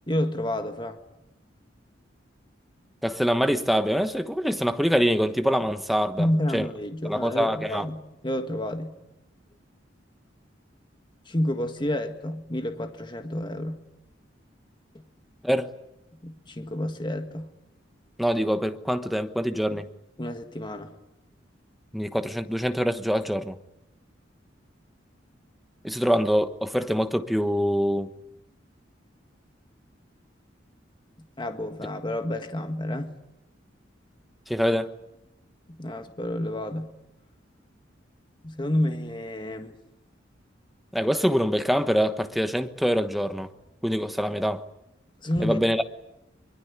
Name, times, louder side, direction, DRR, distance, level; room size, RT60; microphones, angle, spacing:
voice 1, 0.1-1.0 6.2-9.0 11.2-13.8 14.9-15.0 16.2-17.5 19.7-19.8 20.2-21.0 31.4-33.2 35.7-37.0 38.4-39.7 45.2-45.6, left 1 dB, 25° left, 1.7 m, -30 dB
voice 2, 3.0-6.3 6.5-6.7 7.0-7.9 15.4-15.7 18.2-19.8 21.9-23.5 25.8-28.1 34.5-34.9 40.9-43.5 43.8-44.6 45.4-45.9, equal, ahead, 1.2 m, -24 dB
24.0 x 23.0 x 9.6 m
head